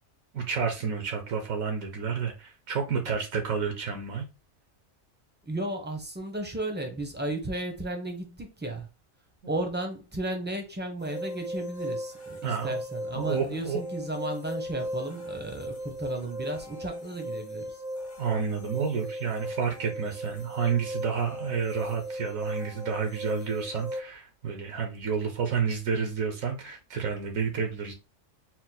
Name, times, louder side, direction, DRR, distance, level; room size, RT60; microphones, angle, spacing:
voice 1, 0.3-4.3 9.4-9.5 12.4-12.8 13.1-13.8 18.2-27.9, right 6 dB, 80° right, 1.3 m, -30 dB
voice 2, 5.4-8.9 9.5-17.8, right 1 dB, 10° right, 0.7 m, -34 dB
sound 1, 11.0-24.0, equal, 45° left, 1.2 m, -37 dB
4.4 x 2.1 x 4.0 m
omnidirectional pair, 1.4 m